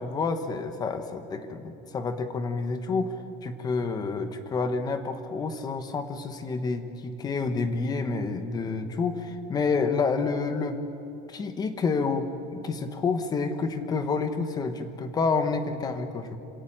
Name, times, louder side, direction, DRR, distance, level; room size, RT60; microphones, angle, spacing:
voice 1, 0.0-3.2 3.4-10.8 11.3-16.4, left 4 dB, 20° left, 9 dB, 1.1 m, -29 dB
26.5 x 17.0 x 8.7 m, 2.7 s
cardioid pair, 180°, 21 cm